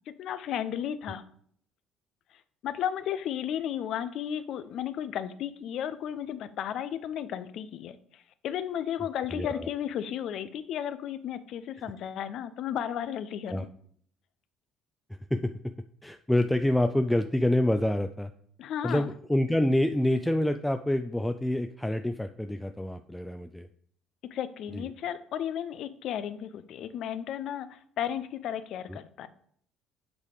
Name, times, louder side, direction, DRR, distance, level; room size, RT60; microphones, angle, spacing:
voice 1, 0.2-1.2 2.3-13.7 18.6-19.1 24.3-29.3, left 9 dB, 65° left, 14 dB, 0.5 m, -34 dB
voice 2, 9.3-9.7 13.5-13.6 15.1-15.5 16.0-18.3 18.8-23.7 24.7-24.9 28.9-29.0, left 1 dB, 5° left, 7 dB, 0.4 m, -27 dB
8.2 x 3.4 x 4.8 m, 0.62 s
supercardioid pair, 85°, 0 cm